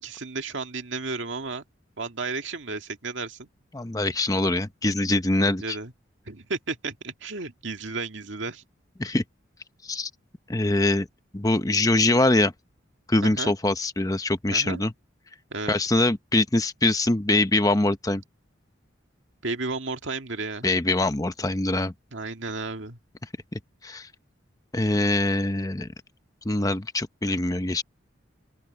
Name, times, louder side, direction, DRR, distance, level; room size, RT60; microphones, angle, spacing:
voice 1, 0.0-1.6 2.0-3.5 5.4-5.9 6.3-8.6 13.2-13.5 14.5-14.8 15.5-15.8 19.4-20.7 22.1-23.0, right 3 dB, 70° right, 2.0 m, -33 dB
voice 2, 3.7-5.8 9.0-9.2 9.9-10.1 10.5-11.1 11.3-12.5 13.1-14.9 15.7-18.2 20.6-21.9 23.8-24.1 24.7-25.9 26.4-27.8, left 2 dB, 20° left, 0.8 m, -23 dB
open air
head